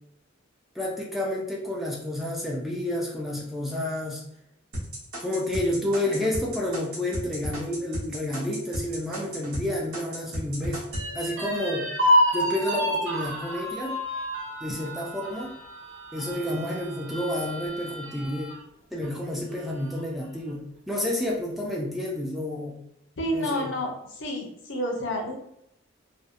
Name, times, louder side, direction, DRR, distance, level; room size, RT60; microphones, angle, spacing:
voice 1, 0.8-4.2 5.2-10.8 11.1-11.9 12.3-14.0 14.6-15.5 16.1-18.5 18.9-22.8 23.3-23.7, left 1 dB, ahead, -3 dB, 0.3 m, -30 dB
sound 1, 4.7-9.6 9.9-11.0, right 1 dB, 90° right, 1.0 m, -33 dB
sound 2, 10.9-18.6 19.0-19.1 19.5-20.2, equal, 70° right, 0.7 m, -29 dB
voice 2, 23.2-25.4, equal, 70° left, 1 dB, 0.6 m, -29 dB
2.6 x 2.1 x 2.5 m, 0.76 s
head